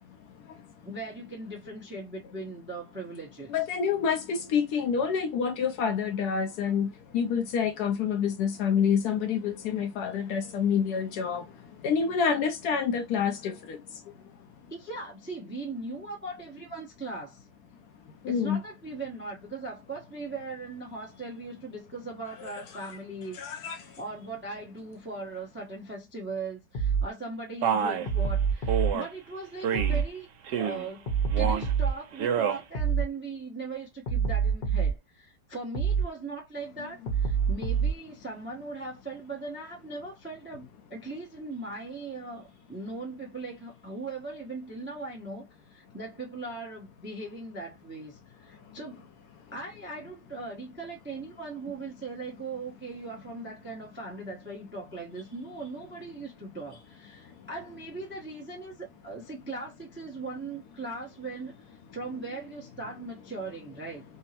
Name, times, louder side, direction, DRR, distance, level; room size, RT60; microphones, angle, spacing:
voice 1, 0.2-0.7 3.5-14.4 14.6-14.7 18.0-18.6 22.4-22.8 23.3-24.0 37.0-37.1 48.5-48.8 57.2-57.5, left 7 dB, 70° left, 1.0 m, -28 dB
voice 2, 0.8-3.5 14.7-17.4 18.3-49.1 49.5-64.0, right 3 dB, 15° right, 0.4 m, -39 dB
sound 1, 26.7-27.1 28.1-28.9 29.7-30.1 31.1-32.0 32.7-33.1 34.1-35.0 35.7-36.1 37.1-38.0, right 6 dB, 40° left, 0.9 m, -26 dB
Male speech man speaking, 27.6-28.1 28.7-29.1 29.6-30.0 30.4-30.9 31.3-31.7 32.1-32.6, right 8 dB, 80° right, 1.3 m, -28 dB
3.4 x 2.0 x 2.7 m
omnidirectional pair, 1.9 m